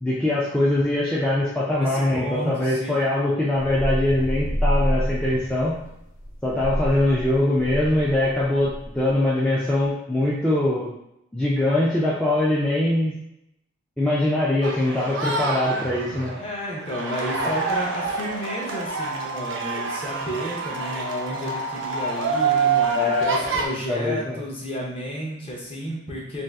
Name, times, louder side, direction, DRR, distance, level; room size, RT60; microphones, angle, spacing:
voice 1, 0.0-5.8 6.4-10.9 11.3-13.1 14.0-16.3 22.9-23.3 23.9-24.4, left 1 dB, 5° left, -8 dB, 0.3 m, -22 dB
voice 2, 1.8-3.0 15.1-15.3 16.3-26.4, equal, 30° left, -3 dB, 0.7 m, -32 dB
sound 1, 3.6-9.1, equal, 85° left, 0.5 m, -28 dB
sound 2, 14.6-23.7, right 4 dB, 80° right, 0.5 m, -26 dB
2.6 x 2.4 x 3.3 m, 0.79 s
head